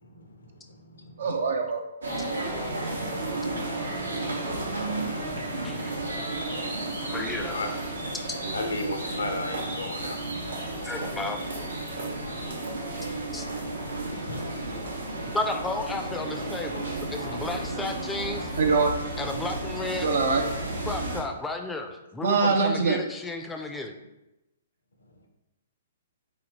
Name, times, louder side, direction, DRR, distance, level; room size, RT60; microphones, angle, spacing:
voice 1, 0.0-1.3 2.7-6.1 6.7-7.2 7.5-7.7 8.5-11.0 14.2-14.5 14.8-15.0, left 2 dB, 80° left, 3 dB, 0.6 m, -39 dB
voice 2, 1.2-1.8 8.4-8.6 15.2-15.3 18.6-18.9 20.0-20.4 22.2-23.0, right 4 dB, 65° right, 3 dB, 0.4 m, -23 dB
sound 1, 2.0-21.2, right 2 dB, 85° right, 0.8 m, -33 dB
voice 3, 7.1-7.6 10.8-11.4 13.3-13.5 15.3-18.5 19.2-20.1 20.9-23.9, left 2 dB, 10° left, 4 dB, 0.4 m, -33 dB
3.9 x 2.7 x 3.1 m, 0.95 s
figure-of-eight pair, 125°, 0 cm